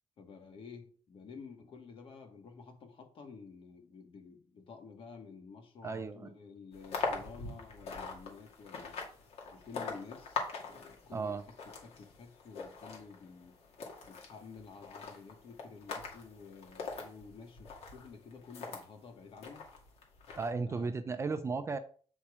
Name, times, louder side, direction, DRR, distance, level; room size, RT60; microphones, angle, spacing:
voice 1, 0.2-9.0 9.5-13.5 14.0-19.6 20.7-20.9, left 5 dB, 50° left, 5 dB, 1.7 m, -51 dB
voice 2, 5.8-6.3 11.1-11.4 20.4-21.8, right 4 dB, 25° right, 10 dB, 0.5 m, -35 dB
sound 1, 6.7-18.9 19.4-20.5, left 4 dB, 65° left, 2.3 m, -43 dB
8.3 x 4.3 x 4.9 m, 0.43 s
cardioid pair, 175°, 12 cm